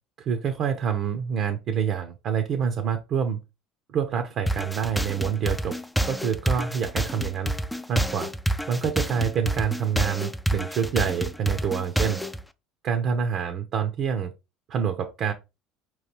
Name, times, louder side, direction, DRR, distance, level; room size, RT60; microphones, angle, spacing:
voice 1, 0.2-3.4 3.9-5.8 6.1-7.5 7.9-8.3 8.7-12.2 12.8-14.3 14.7-15.3, right 7 dB, 55° right, 0.7 m, -27 dB
sound 1, 4.5-12.4, right 1 dB, 5° left, 0.4 m, -28 dB
4.9 x 3.1 x 3.2 m
supercardioid pair, 85°, 0 cm